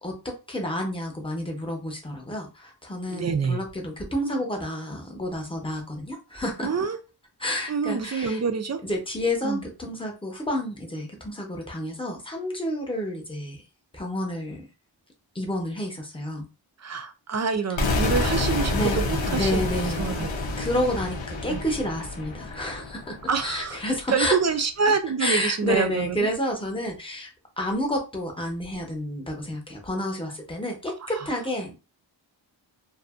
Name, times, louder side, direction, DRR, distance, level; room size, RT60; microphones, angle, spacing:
voice 1, 0.0-6.7 7.4-8.4 8.8-13.6 13.9-14.6 15.3-16.5 18.7-19.0 19.3-20.1 20.6-23.2 23.4-24.4 25.2-27.3 27.6-31.8, left 1 dB, 10° left, 1 dB, 0.8 m, -29 dB
voice 2, 3.1-3.6 6.6-7.0 7.7-8.8 9.4-9.6 16.8-20.3 21.5-21.6 23.3-23.8 24.1-26.3 31.1-31.3, right 5 dB, 40° right, 8 dB, 0.4 m, -26 dB
sound 1, 17.8-23.6, left 2 dB, 80° left, 0.8 m, -28 dB
2.6 x 2.5 x 2.4 m, 0.31 s
wide cardioid pair, 70°, 45 cm